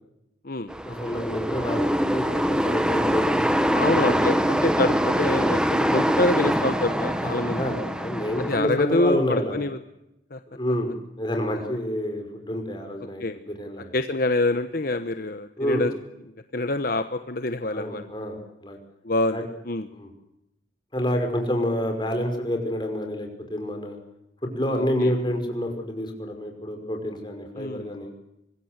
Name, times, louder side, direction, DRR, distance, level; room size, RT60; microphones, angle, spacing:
sound 1, 0.7-8.6, equal, 5° right, 1.4 m, -24 dB
voice 1, 0.8-4.2 7.2-9.6 10.5-14.0 15.6-15.8 17.7-18.8 19.3-19.4 19.9-20.1 20.9-24.0 24.4-28.1, equal, 25° left, 4 dB, 5.6 m, -28 dB
voice 2, 3.7-7.6 8.5-9.8 10.3-10.4 13.2-13.4 13.9-15.9 16.5-18.0 19.0-19.4 19.7-19.9 24.7-25.1 27.6-27.9, left 2 dB, 50° left, 9 dB, 1.1 m, -26 dB
25.0 x 22.0 x 8.1 m, 0.87 s
head